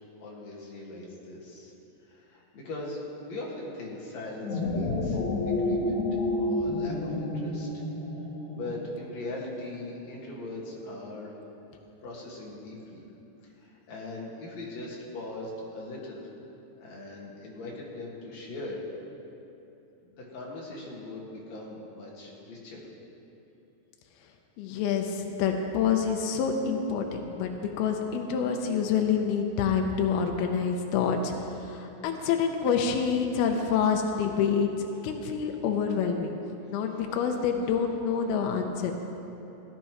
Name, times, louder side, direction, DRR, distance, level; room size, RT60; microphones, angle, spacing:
voice 1, 0.2-1.7 2.0-3.0 3.3-7.8 8.5-11.4 12.0-13.0 13.4-16.3 16.8-18.8 20.0-22.8, left 2 dB, 50° left, -4 dB, 2.6 m, -40 dB
sound 1, 4.3-8.9, left 2 dB, 70° left, 2.8 m, -29 dB
voice 2, 24.6-36.3 36.7-38.9, left 6 dB, 85° left, 3 dB, 2.6 m, -27 dB
17.5 x 11.5 x 3.1 m, 2.9 s
omnidirectional pair, 4.6 m